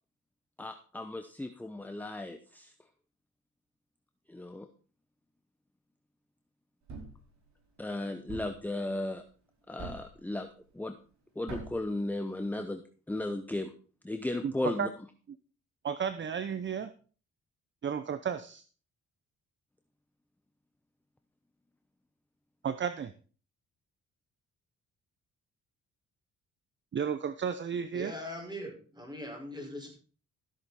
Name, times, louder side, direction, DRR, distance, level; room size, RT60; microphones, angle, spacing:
voice 1, 0.6-2.7 4.3-4.7 7.8-9.2 9.7-10.5 10.7-10.9 11.4-12.8 13.1-13.7 14.0-14.9, left 2 dB, 5° left, 8 dB, 0.9 m, -35 dB
Thump thud, 6.9-7.3 8.3-8.7 9.8-10.2 11.5-11.9, right 3 dB, 65° right, 4.9 m, -42 dB
voice 2, 14.4-14.9 15.8-16.9 17.8-18.6 22.6-23.1 26.9-28.1, right 7 dB, 40° right, 12 dB, 0.8 m, -33 dB
voice 3, 27.9-29.9, left 1 dB, 15° right, 1 dB, 5.2 m, -41 dB
14.0 x 8.1 x 4.3 m, 0.39 s
cardioid pair, 90°, 30 cm